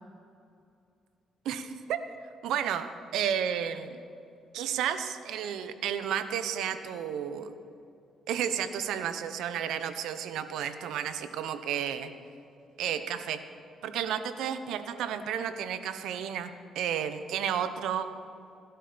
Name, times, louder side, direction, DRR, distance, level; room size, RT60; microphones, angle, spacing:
voice 1, 1.4-2.0 2.4-4.0 4.5-7.5 8.3-12.1 12.8-13.4 13.8-18.1, right 9 dB, 85° right, 10 dB, 0.9 m, -32 dB
17.0 x 12.0 x 5.1 m, 2.5 s
cardioid pair, 90°, 0 cm